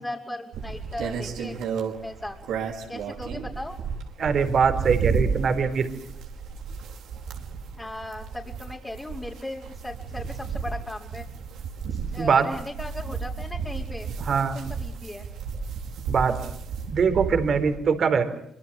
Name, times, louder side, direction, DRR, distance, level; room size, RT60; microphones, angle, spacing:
voice 1, 0.0-1.6 2.0-2.4 2.9-3.8 7.8-11.2 12.1-14.1 14.8-15.3, left 1 dB, 15° left, -4 dB, 5.1 m, -37 dB
sound 1, 0.5-17.8, right 5 dB, 80° right, 5.1 m, -33 dB
voice 2, 4.2-5.9 12.2-12.5 14.2-14.6 16.1-16.4 16.9-18.3, right 6 dB, 55° right, 9 dB, 4.4 m, -22 dB
25.5 x 24.0 x 7.8 m, 0.71 s
cardioid pair, 90°, 0 cm